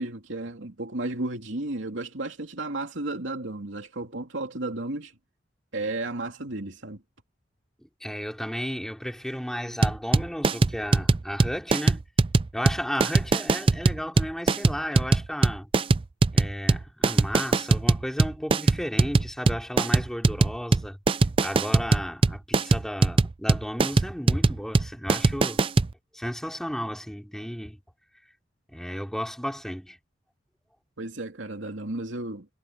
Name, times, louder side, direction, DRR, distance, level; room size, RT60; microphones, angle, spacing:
voice 1, 0.0-5.1 5.7-7.0 31.0-32.5, right 2 dB, 80° right, 2.7 m, -33 dB
voice 2, 7.8-12.0 12.5-15.7 16.3-21.0 21.4-25.6 26.1-27.8 28.7-30.0, equal, 5° left, 3.7 m, -33 dB
sound 1, 9.8-25.9, right 3 dB, 30° right, 0.4 m, -21 dB
head